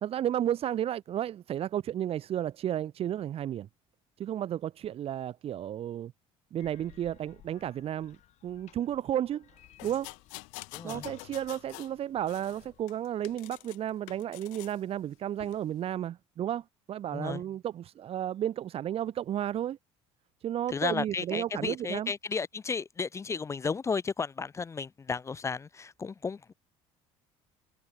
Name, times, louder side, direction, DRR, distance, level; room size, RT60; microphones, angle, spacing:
voice 1, 0.0-3.7 4.2-6.1 6.5-8.2 8.4-9.5 9.8-10.1 10.8-19.8 20.4-22.1, right 11 dB, 50° right, 0.8 m, -33 dB
sound 1, 6.6-12.8, left 13 dB, 65° left, 5.3 m, -60 dB
sound 2, 9.8-12.0 12.3-13.8 14.1-14.8 15.4-15.6, left 35 dB, 85° left, 0.7 m, -46 dB
voice 2, 10.7-11.1 17.1-17.4 20.7-26.5, left 5 dB, 20° left, 0.4 m, -33 dB
supercardioid pair, 90°, 13 cm